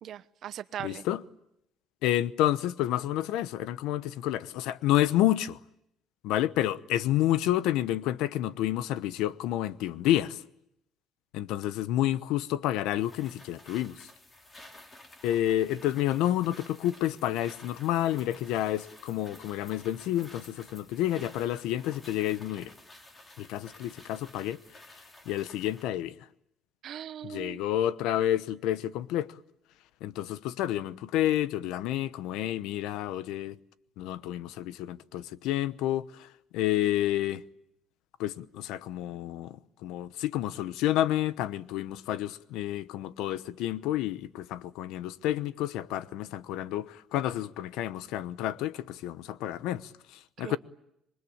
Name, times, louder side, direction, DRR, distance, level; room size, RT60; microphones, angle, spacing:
voice 1, 0.0-1.0 26.8-27.6 50.4-50.6, right 10 dB, 55° right, 1.0 m, -39 dB
voice 2, 0.8-1.2 2.0-5.6 6.2-10.4 11.3-14.1 15.2-22.7 23.4-24.6 25.3-26.2 27.2-29.4 30.0-33.6 34.0-36.3 36.5-37.4 38.2-50.6, left 13 dB, 85° left, 0.9 m, -29 dB
sound 1, 12.9-25.9, left 1 dB, 20° left, 3.4 m, -52 dB
27.0 x 22.5 x 8.8 m
cardioid pair, 135°, 0 cm